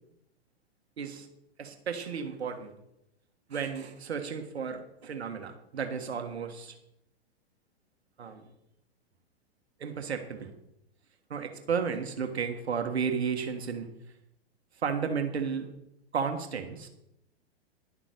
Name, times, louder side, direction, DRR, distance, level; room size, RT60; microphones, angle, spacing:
voice 1, 1.0-1.3 1.6-2.7 3.5-6.8 8.2-8.5 9.8-10.5 11.3-13.9 14.7-15.7 16.1-16.9, right 6 dB, 85° right, 6 dB, 1.5 m, -33 dB
11.0 x 7.2 x 6.8 m, 0.82 s
hypercardioid pair, 115°, 31 cm